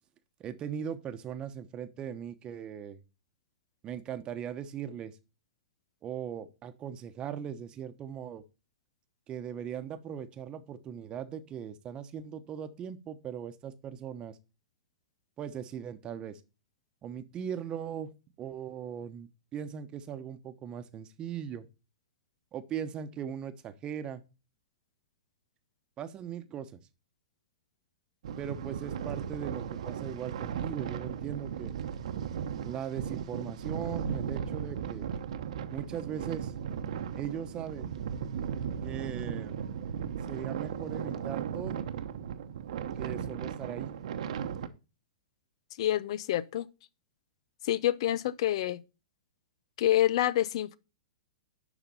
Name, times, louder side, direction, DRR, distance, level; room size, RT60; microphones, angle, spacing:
voice 1, 0.4-3.0 3.8-5.2 6.0-8.4 9.3-14.4 15.4-16.4 17.0-18.1 18.4-21.7 22.5-24.2 26.0-26.8 28.4-31.7 32.6-35.1 35.7-36.5 37.1-37.9 38.8-39.6 40.3-41.8 43.0-43.9, right 8 dB, 25° right, 1.0 m, -39 dB
sound 1, 28.2-44.7, right 8 dB, 70° right, 1.1 m, -36 dB
voice 2, 45.8-46.7 47.6-48.8 49.8-50.8, left 12 dB, 55° left, 0.6 m, -27 dB
11.5 x 4.1 x 5.5 m
hypercardioid pair, 135°, 4 cm